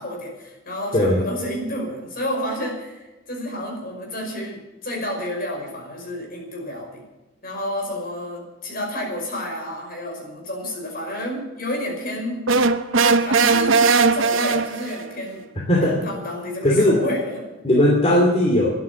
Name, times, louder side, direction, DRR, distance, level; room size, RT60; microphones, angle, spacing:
voice 1, 0.0-7.0 7.4-12.4 13.2-13.8 14.1-15.4 15.9-17.5, left 1 dB, 50° left, 1 dB, 5.3 m, -30 dB
sound 1, 12.5-15.1, right 4 dB, 75° right, 0.9 m, -18 dB
voice 2, 15.7-16.0 16.6-17.0 17.6-18.7, left 1 dB, 30° left, -1 dB, 2.6 m, -17 dB
13.0 x 11.0 x 8.2 m, 1.1 s
head